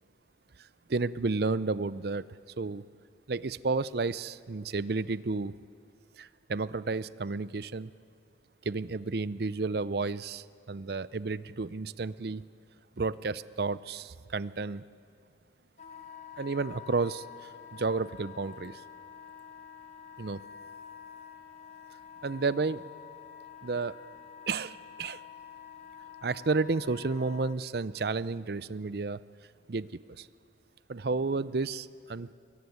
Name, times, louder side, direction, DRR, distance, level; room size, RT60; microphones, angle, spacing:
voice 1, 0.9-2.2 2.6-2.8 3.3-5.5 6.2-7.9 8.6-12.5 13.0-14.8 16.4-18.8 20.2-20.4 22.2-22.9 23.6-24.0 24.5-25.2 26.2-29.2 29.7-30.3 30.9-32.3, right 3 dB, 55° right, 17 dB, 0.6 m, -32 dB
Wind instrument woodwind instrument, 15.8-27.6, left 8 dB, 40° left, 1.6 m, -48 dB
23.0 x 22.5 x 9.5 m, 2.2 s
head